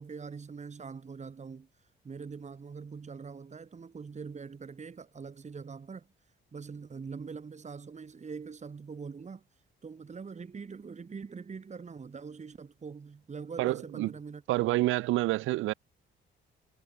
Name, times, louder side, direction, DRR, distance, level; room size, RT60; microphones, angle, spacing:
voice 1, 0.0-1.7 2.0-6.1 6.5-9.4 9.8-14.4, right 5 dB, 35° right, 3.6 m, -43 dB
voice 2, 13.6-14.1 14.5-15.7, right 18 dB, 85° right, 0.5 m, -28 dB
cardioid pair, 90°, 20 cm